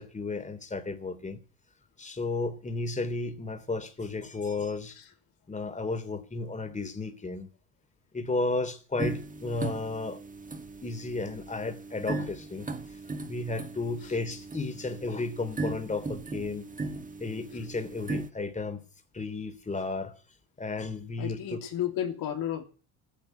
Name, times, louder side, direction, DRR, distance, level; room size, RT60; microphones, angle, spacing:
voice 1, 0.0-1.4 2.0-5.0 5.5-7.5 8.1-10.2 10.8-12.7 13.3-16.7 17.2-18.8 19.1-20.1 20.6-21.6, left 3 dB, 20° left, 3.1 m, -33 dB
sound 1, 9.0-18.3, right 3 dB, 20° right, 1.9 m, -38 dB
voice 2, 21.2-22.6, left 10 dB, 70° left, 3.1 m, -32 dB
14.0 x 10.5 x 9.3 m
supercardioid pair, 80°, 36 cm